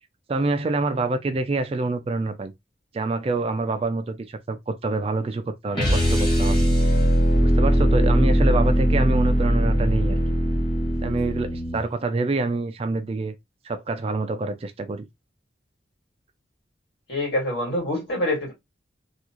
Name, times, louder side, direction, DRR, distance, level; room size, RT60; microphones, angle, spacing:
voice 1, 0.3-2.5 2.9-6.6 7.4-10.2 11.0-13.3 13.6-15.1, right 3 dB, 30° right, 0.3 m, -26 dB
sound 1, 5.7-11.9, equal, 25° left, 1.5 m, -20 dB
voice 2, 17.1-18.5, left 1 dB, 70° left, 2.3 m, -25 dB
3.6 x 2.4 x 2.9 m
head